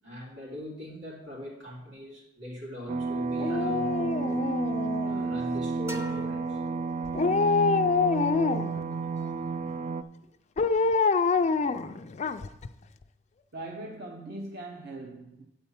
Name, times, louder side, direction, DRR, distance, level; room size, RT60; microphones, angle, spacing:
voice 1, 0.0-4.5 5.0-6.6 7.1-7.3, left 1 dB, 90° right, 3.4 m, -41 dB
sound 1, 2.9-10.0, right 4 dB, 40° right, 0.4 m, -31 dB
Dog, 3.4-5.4 7.1-8.8 10.6-12.7 13.0-13.1, left 4 dB, 40° left, 0.4 m, -26 dB
sound 2, 5.9-7.6, right 1 dB, 15° right, 0.7 m, -43 dB
voice 2, 13.5-15.5, right 2 dB, 60° right, 0.8 m, -40 dB
9.0 x 4.3 x 7.1 m
head